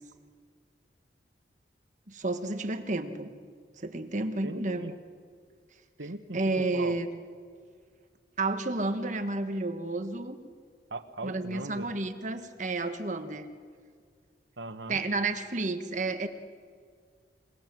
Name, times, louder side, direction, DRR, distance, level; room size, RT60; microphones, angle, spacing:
voice 1, 2.1-3.3 3.8-4.8 6.3-7.1 8.4-10.4 11.2-13.5 14.9-16.3, right 2 dB, 45° right, 8 dB, 1.3 m, -31 dB
voice 2, 4.4-4.9 6.0-6.9 10.9-11.9 14.6-15.0, right 2 dB, 85° right, 10 dB, 1.4 m, -39 dB
27.0 x 19.5 x 7.6 m, 2.1 s
head